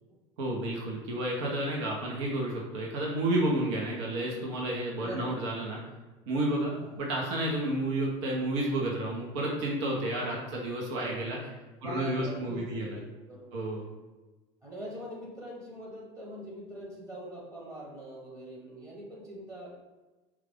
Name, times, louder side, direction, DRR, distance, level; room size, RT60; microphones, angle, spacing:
voice 1, 0.4-5.8 6.3-11.4 11.8-13.0 13.5-13.8, right 1 dB, 80° right, -2 dB, 0.9 m, -31 dB
voice 2, 5.0-5.8 6.7-7.0 10.2-10.6 11.8-13.6 14.6-19.7, equal, 20° right, -4 dB, 1.1 m, -43 dB
4.8 x 2.3 x 3.5 m, 1.2 s
supercardioid pair, 140°, 15 cm